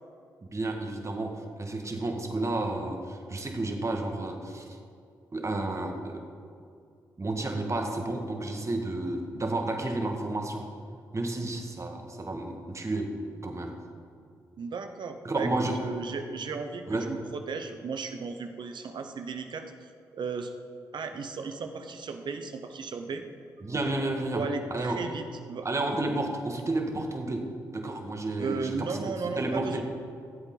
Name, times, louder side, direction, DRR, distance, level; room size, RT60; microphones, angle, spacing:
voice 1, 0.4-4.7 5.3-6.2 7.2-10.7 11.1-13.8 15.2-15.8 16.9-17.1 23.6-25.0 25.6-29.0 29.4-29.8, right 2 dB, 35° right, 3 dB, 1.7 m, -31 dB
voice 2, 14.6-15.5 15.8-20.5 20.9-23.2 24.3-25.7 28.4-29.8, right 5 dB, 60° right, 6 dB, 0.9 m, -35 dB
14.5 x 8.1 x 3.9 m, 2.4 s
hypercardioid pair, 40°, 9 cm